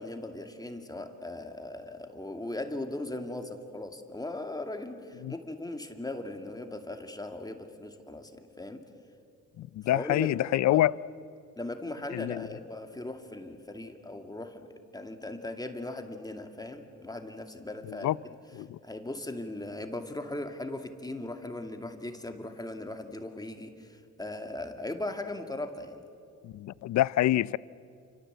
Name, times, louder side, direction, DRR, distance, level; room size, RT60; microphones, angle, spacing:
voice 1, 0.0-8.8 9.9-10.8 11.6-14.7 14.9-18.1 18.8-26.0, left 2 dB, 15° left, 2.3 m, -38 dB
voice 2, 9.6-10.9 12.1-12.5 18.0-18.2 18.5-18.8 26.4-27.6, left 14 dB, 65° left, 0.6 m, -26 dB
28.5 x 26.0 x 8.0 m
cardioid pair, 90°, 30 cm